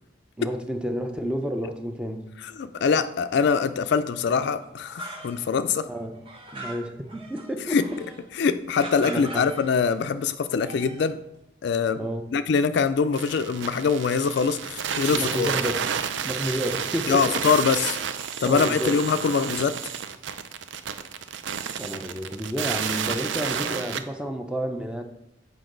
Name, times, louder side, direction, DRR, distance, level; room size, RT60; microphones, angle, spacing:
voice 1, 0.4-2.3 5.9-6.2 6.5-7.8 9.0-9.5 12.0-12.2 15.1-15.8 16.2-17.4 18.4-19.2 21.8-25.0, equal, 5° right, 0.5 m, -30 dB
voice 2, 2.6-5.9 7.7-7.9 8.4-11.2 11.6-12.0 12.3-15.5 17.1-18.0 18.4-19.8, left 5 dB, 60° left, 0.3 m, -23 dB
sound 1, 4.6-5.6 5.9-8.2 8.8-10.1 10.5-11.1, right 3 dB, 30° right, 0.9 m, -41 dB
sound 2, 13.1-24.0, right 7 dB, 65° right, 0.5 m, -31 dB
7.8 x 5.3 x 3.8 m
head